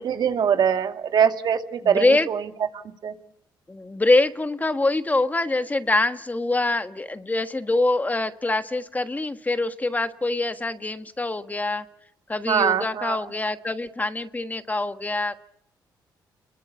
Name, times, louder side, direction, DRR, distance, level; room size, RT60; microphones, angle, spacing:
voice 1, 0.0-2.4 3.0-3.1 12.5-13.2, right 8 dB, 65° right, 7 dB, 2.2 m, -22 dB
voice 2, 1.8-2.3 3.7-11.8 12.3-15.4, left 2 dB, 20° left, 10 dB, 1.4 m, -24 dB
30.0 x 21.5 x 7.1 m, 0.75 s
cardioid pair, 80°, 8 cm